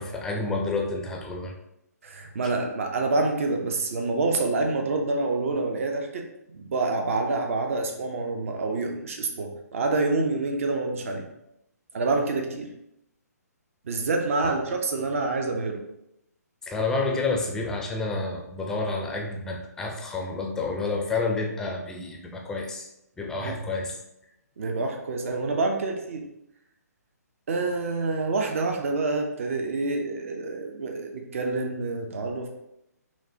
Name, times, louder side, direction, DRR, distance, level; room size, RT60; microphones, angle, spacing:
voice 1, 0.0-1.5 2.5-2.6 14.4-14.5 16.6-22.9 23.2-24.0, left 3 dB, 5° left, 1 dB, 0.4 m, -29 dB
voice 2, 2.0-6.2 6.5-11.3 11.9-12.7 13.9-15.8 23.4-23.6 24.6-26.2 27.5-32.6, right 3 dB, 50° right, 3 dB, 0.5 m, -27 dB
5.7 x 2.1 x 2.7 m, 0.84 s
figure-of-eight pair, 135°, 9 cm